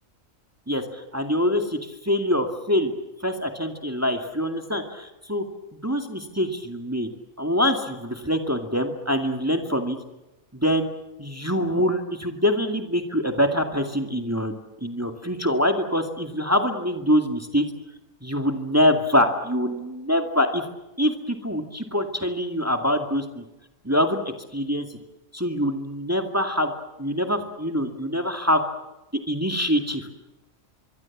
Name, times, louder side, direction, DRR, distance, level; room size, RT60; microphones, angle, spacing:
voice 1, 0.7-2.9 3.2-5.4 5.7-7.1 7.4-10.0 10.5-10.9 11.2-14.5 14.8-17.7 18.2-20.6 21.0-23.4 23.8-24.2 24.5-24.9 25.3-26.7 27.0-28.6 29.3-30.1, equal, 10° right, 5 dB, 2.1 m, -24 dB
24.5 x 24.0 x 7.3 m, 0.98 s
omnidirectional pair, 1.4 m